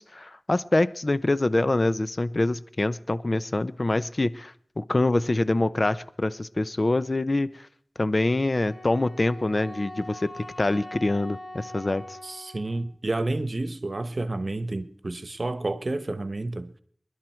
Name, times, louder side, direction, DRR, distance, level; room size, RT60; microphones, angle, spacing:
voice 1, 0.0-7.5 8.0-12.2, left 2 dB, 50° left, 0.7 m, -25 dB
Wind instrument woodwind instrument, 8.6-12.9, left 1 dB, 70° left, 5.3 m, -42 dB
voice 2, 12.2-16.7, right 2 dB, 60° right, 1.0 m, -30 dB
27.0 x 11.0 x 4.5 m
wide cardioid pair, 45°, 0 cm